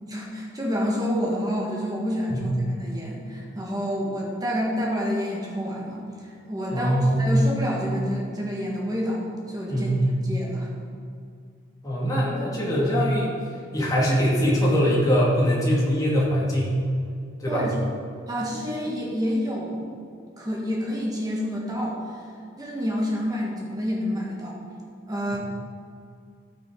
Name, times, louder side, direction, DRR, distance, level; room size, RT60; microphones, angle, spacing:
voice 1, 0.0-9.9 10.2-10.7 17.5-17.7 18.3-19.9 20.4-22.2 22.5-24.6 25.1-25.4, equal, 20° right, -4 dB, 1.6 m, -28 dB
voice 2, 2.3-2.6 6.7-7.2 9.7-10.1 11.8-13.3 13.7-16.8 17.4-17.6 25.3-25.4, equal, 20° left, -6 dB, 2.2 m, -22 dB
14.5 x 6.0 x 3.9 m, 2.3 s
head